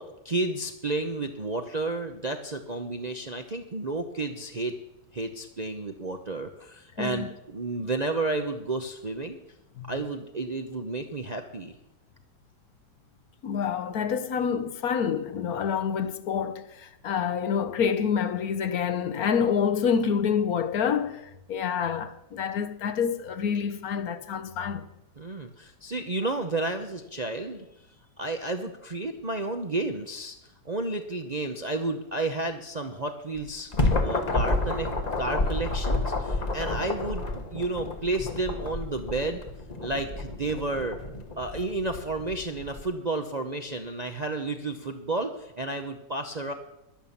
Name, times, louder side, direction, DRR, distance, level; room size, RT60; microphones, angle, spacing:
voice 1, 0.0-4.7 5.1-9.4 9.9-11.7 25.2-27.9 28.2-30.4 30.6-33.7 34.0-34.9 35.2-39.4 39.8-41.0 41.4-46.5, right 2 dB, 40° right, 0.6 m, -31 dB
voice 2, 7.0-7.3 9.8-9.9 13.4-24.9, left 7 dB, 65° left, 1.2 m, -27 dB
sound 1, 33.3-42.8, left 2 dB, 25° left, 1.1 m, -30 dB
12.0 x 11.0 x 7.1 m
omnidirectional pair, 1.8 m